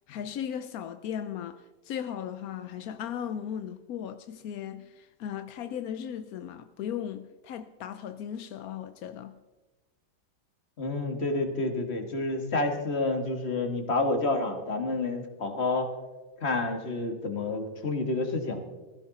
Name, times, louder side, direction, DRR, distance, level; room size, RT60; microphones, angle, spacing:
voice 1, 0.1-9.4, left 9 dB, 70° left, 0.8 m, -37 dB
voice 2, 10.8-15.9 16.4-18.6, left 2 dB, 35° left, 2.0 m, -29 dB
20.5 x 15.5 x 4.2 m
omnidirectional pair, 2.2 m